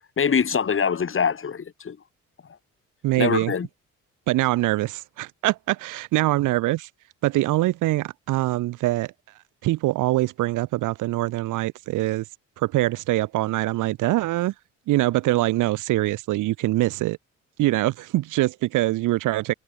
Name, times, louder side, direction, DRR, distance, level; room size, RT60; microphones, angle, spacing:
voice 1, 0.2-2.0 3.2-3.7, left 6 dB, 45° left, 4.8 m, -23 dB
voice 2, 3.0-3.5 4.3-6.9 7.2-9.1 9.6-12.2 12.6-14.5 14.9-17.2 17.6-19.5, right 17 dB, 85° right, 1.1 m, -23 dB
cardioid pair, 90°, 30 cm